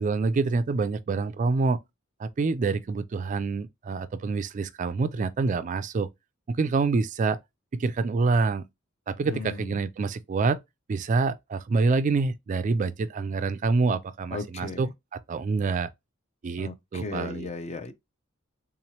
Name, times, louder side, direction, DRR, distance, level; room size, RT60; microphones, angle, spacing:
voice 1, 0.0-1.8 2.2-6.1 6.5-7.4 7.7-8.7 9.1-10.6 10.9-14.9 15.3-15.9 16.4-17.5, right 4 dB, 40° right, 0.3 m, -26 dB
voice 2, 9.2-9.8 14.3-14.9 16.6-17.9, left 3 dB, 35° left, 0.5 m, -36 dB
3.7 x 3.0 x 2.8 m
head